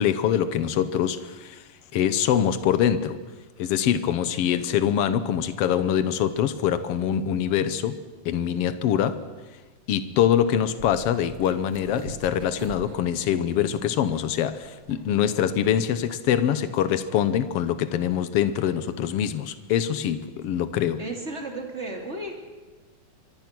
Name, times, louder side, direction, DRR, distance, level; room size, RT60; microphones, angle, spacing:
voice 1, 0.0-1.6 1.9-3.2 3.6-8.0 8.2-9.2 9.9-21.0, left 9 dB, 80° left, 1.3 m, -24 dB
sound 1, 10.8-15.8, right 3 dB, 45° right, 3.1 m, -42 dB
voice 2, 21.0-22.4, right 2 dB, 20° right, 2.9 m, -34 dB
25.0 x 24.5 x 6.1 m
omnidirectional pair, 4.0 m